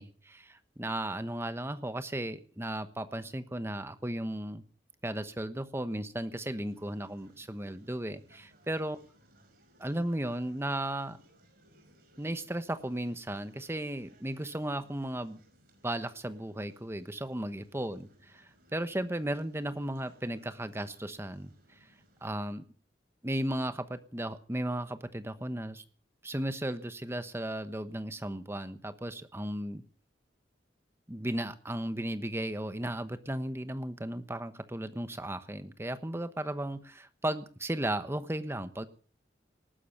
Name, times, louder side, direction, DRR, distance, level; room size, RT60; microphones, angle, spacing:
voice 1, 0.0-4.6 5.0-9.0 9.8-11.2 12.2-15.4 15.8-21.5 22.2-22.6 23.2-25.8 26.2-29.8 31.1-38.9, right 1 dB, 15° right, 11 dB, 1.1 m, -35 dB
sound 1, 6.6-22.3, right 1 dB, 55° right, 5.6 m, -64 dB
19.0 x 12.0 x 5.7 m, 0.43 s
head